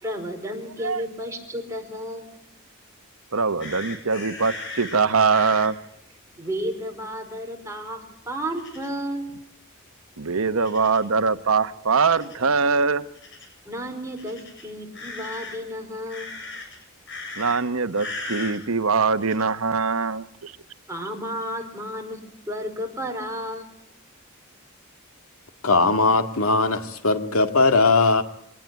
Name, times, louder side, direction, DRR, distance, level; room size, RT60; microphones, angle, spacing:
voice 1, 0.0-2.2 6.4-9.3 13.6-16.3 20.9-22.2 22.5-23.7, equal, 15° right, 2 dB, 4.7 m, -32 dB
voice 2, 3.3-5.8 10.2-13.0 17.4-20.5, right 4 dB, 85° right, 11 dB, 1.1 m, -22 dB
sound 1, 3.6-5.7 8.6-8.9 10.6-11.1 12.0-12.4 13.1-13.5 14.2-15.6 16.1-16.8 17.1-17.6 17.9-18.6 19.2-19.4, left 3 dB, 60° left, 7.9 m, -37 dB
voice 3, 25.6-28.2, left 3 dB, 90° left, 8 dB, 2.1 m, -19 dB
24.0 x 18.5 x 9.5 m, 0.77 s
head